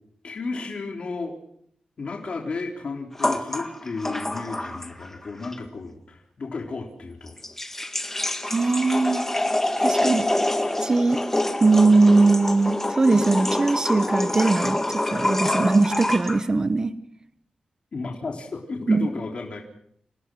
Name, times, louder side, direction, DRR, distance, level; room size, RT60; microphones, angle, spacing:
voice 1, 0.2-1.4 2.0-7.4 17.9-19.6, left 3 dB, 50° left, 0 dB, 3.7 m, -33 dB
sound 1, 3.2-5.1 5.4-5.5 7.3-16.4, left 1 dB, 15° left, 1.8 m, -26 dB
voice 2, 8.5-9.3 9.8-10.3 10.8-11.2 11.6-16.9 18.9-19.1, right 3 dB, 30° right, 11 dB, 1.1 m, -20 dB
28.0 x 17.5 x 6.3 m, 0.69 s
wide cardioid pair, 135°, 2 cm